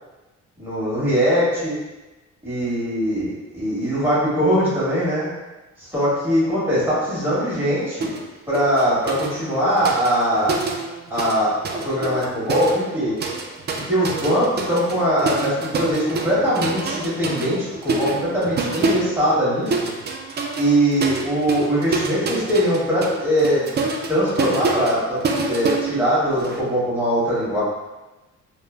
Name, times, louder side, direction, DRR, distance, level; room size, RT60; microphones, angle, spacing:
voice 1, 0.6-1.7 2.4-5.3 5.8-8.2 8.5-10.6 11.1-13.2 13.8-19.9 20.6-23.6 24.1-27.6, equal, 10° right, -10 dB, 1.4 m, -21 dB
sound 1, 8.0-8.3 8.5-11.4 11.6-26.6, right 3 dB, 35° right, 0.4 m, -27 dB
3.1 x 2.3 x 2.4 m, 1.1 s
cardioid pair, 90°, 30 cm